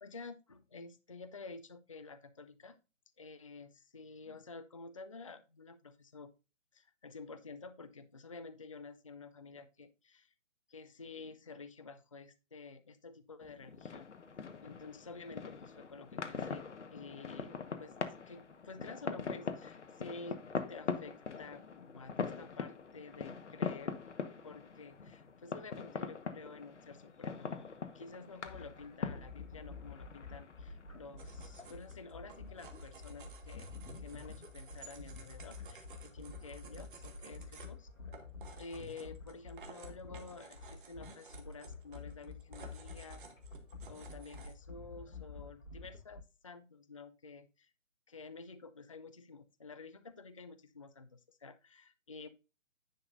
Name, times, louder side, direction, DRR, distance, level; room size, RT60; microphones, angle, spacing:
voice 1, 0.0-2.8 3.2-6.3 6.7-10.3 10.7-14.1 14.6-17.9 18.2-20.4 20.7-23.9 24.4-27.7 27.9-33.7 34.0-37.9 38.6-43.2 43.9-47.7 48.1-52.3, left 3 dB, 25° left, 12 dB, 0.4 m, -50 dB
sound 1, 13.4-32.7, left 5 dB, 65° left, 1.3 m, -43 dB
sound 2, 28.5-46.2, left 4 dB, 85° left, 1.6 m, -49 dB
sound 3, 31.2-44.5, right 5 dB, 40° right, 1.6 m, -56 dB
10.0 x 6.8 x 2.5 m, 0.30 s
figure-of-eight pair, 140°, 38 cm